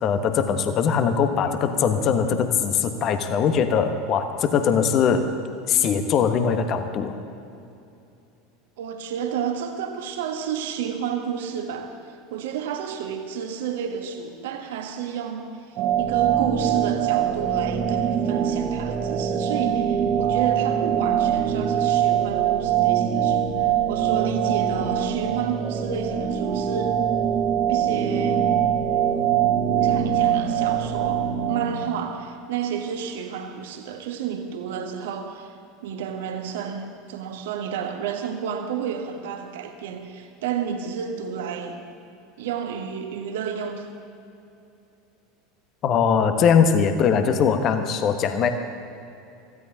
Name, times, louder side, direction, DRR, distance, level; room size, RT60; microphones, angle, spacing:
voice 1, 0.0-5.3 5.7-7.1 45.8-48.5, left 6 dB, 40° left, 8 dB, 1.2 m, -21 dB
voice 2, 8.8-27.0 27.7-28.5 29.8-35.6 35.8-41.8 42.4-43.9, right 7 dB, 60° right, 5 dB, 1.3 m, -31 dB
sound 1, 15.8-31.9, right 9 dB, 45° right, 1.2 m, -23 dB
23.5 x 15.5 x 2.9 m, 2.7 s
figure-of-eight pair, 75°, 0 cm